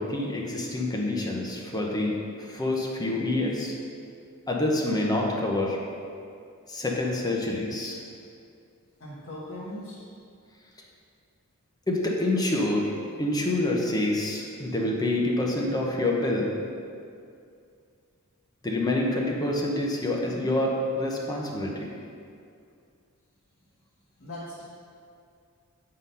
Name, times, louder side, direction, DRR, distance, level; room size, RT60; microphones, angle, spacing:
voice 1, 0.0-3.7 4.5-5.8 6.7-8.0 11.9-12.9 13.2-16.5 18.6-21.9, left 1 dB, 15° left, -2 dB, 0.7 m, -27 dB
voice 2, 9.0-10.0 24.2-24.6, left 1 dB, 60° left, -10 dB, 1.3 m, -39 dB
7.8 x 3.8 x 5.6 m, 2.4 s
head